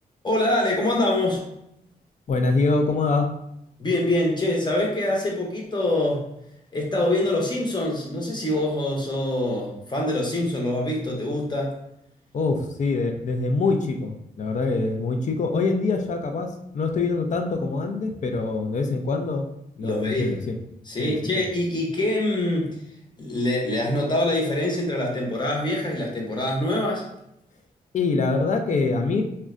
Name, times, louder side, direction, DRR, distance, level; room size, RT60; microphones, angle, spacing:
voice 1, 0.2-1.4 3.8-6.2 6.7-11.8 19.8-20.4 20.8-22.8 23.2-27.0, left 1 dB, 25° left, -2 dB, 0.8 m, -24 dB
voice 2, 2.3-3.3 12.3-19.5 19.8-20.5 21.0-21.2 27.9-29.2, left 3 dB, 50° left, 5 dB, 0.4 m, -24 dB
3.7 x 2.2 x 2.4 m, 0.79 s
wide cardioid pair, 95°, 16 cm